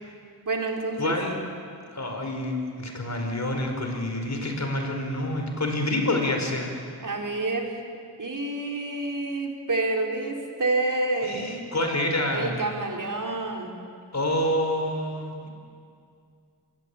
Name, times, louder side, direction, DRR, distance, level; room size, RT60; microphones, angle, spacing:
voice 1, 0.4-1.1 7.0-7.7 8.2-11.5 12.3-13.8, right 2 dB, 55° right, 2 dB, 4.1 m, -28 dB
voice 2, 1.0-1.4 1.9-6.7 11.2-12.5 14.1-15.5, left 1 dB, 45° left, 3 dB, 5.0 m, -27 dB
25.5 x 20.0 x 8.7 m, 2.3 s
cardioid pair, 65°, 39 cm